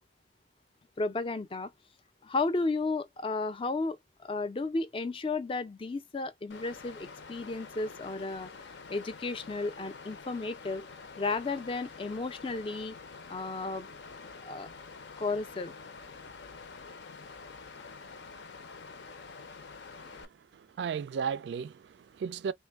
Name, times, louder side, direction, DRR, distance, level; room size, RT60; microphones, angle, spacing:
voice 1, 1.0-1.7 2.2-8.5 8.9-10.9 11.2-13.0 13.3-13.9 14.5-14.7 15.2-15.7, left 3 dB, 30° left, 0.4 m, -33 dB
Water, 6.5-20.2, left 4 dB, 75° left, 0.6 m, -47 dB
voice 2, 19.9-22.5, right 6 dB, 75° right, 0.3 m, -36 dB
3.3 x 2.2 x 3.4 m
head